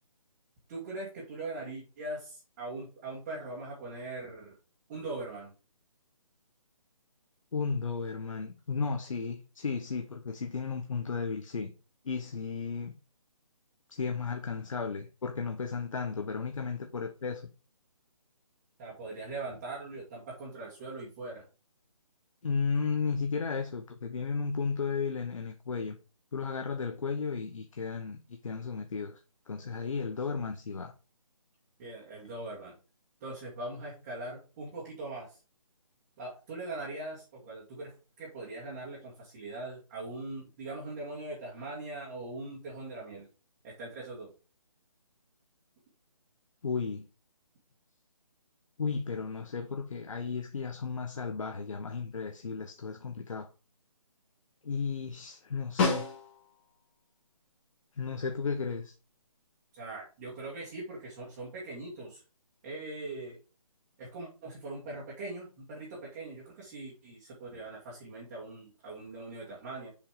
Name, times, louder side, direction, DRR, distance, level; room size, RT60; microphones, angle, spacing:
voice 1, 0.7-4.5 4.9-5.5 18.8-21.5 31.8-32.7 33.2-35.4 36.2-43.3 43.6-44.3 59.7-62.2 62.6-63.4 64.0-69.9, right 2 dB, 20° right, 2.2 m, -41 dB
voice 2, 7.5-11.7 12.0-12.9 13.9-17.5 22.4-26.0 26.3-29.2 29.5-30.9 46.6-47.0 48.8-53.5 54.6-56.1 58.0-58.9, left 5 dB, 65° left, 1.0 m, -34 dB
Snare drum, 55.8-56.7 61.1-61.2, left 4 dB, 20° left, 1.9 m, -30 dB
7.1 x 5.1 x 4.9 m
hypercardioid pair, 165°, 18 cm